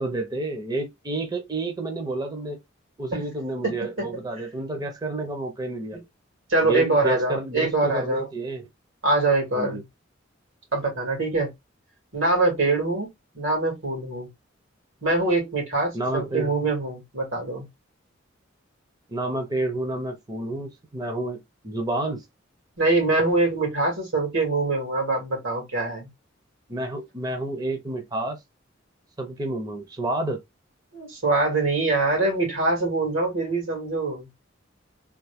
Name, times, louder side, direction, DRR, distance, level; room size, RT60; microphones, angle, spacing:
voice 1, 0.0-2.6 3.0-6.0 6.6-8.7 9.5-9.8 15.9-16.5 19.1-22.2 26.7-28.4 29.2-30.4, right 2 dB, 20° right, 0.5 m, -30 dB
voice 2, 3.6-4.2 6.5-8.3 9.0-9.8 10.7-11.5 12.1-13.1 13.3-14.3 15.0-17.7 22.8-26.1 30.9-34.3, right 2 dB, 90° right, 2.2 m, -24 dB
3.5 x 2.4 x 3.4 m
head